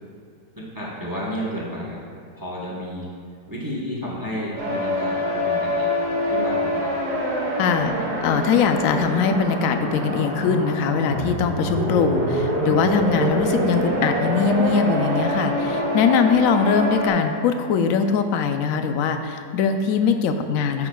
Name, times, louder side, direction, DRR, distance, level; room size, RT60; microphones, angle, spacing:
voice 1, 0.6-2.0 2.3-3.1 3.5-5.9 6.2-6.9, equal, 15° right, -5 dB, 1.0 m, -31 dB
sound 1, 4.6-17.1, equal, 75° right, 2.3 m, -25 dB
voice 2, 7.6-7.9 8.2-20.9, left 6 dB, 70° left, 7 dB, 0.9 m, -21 dB
13.0 x 6.0 x 2.3 m, 2.3 s
omnidirectional pair, 1.7 m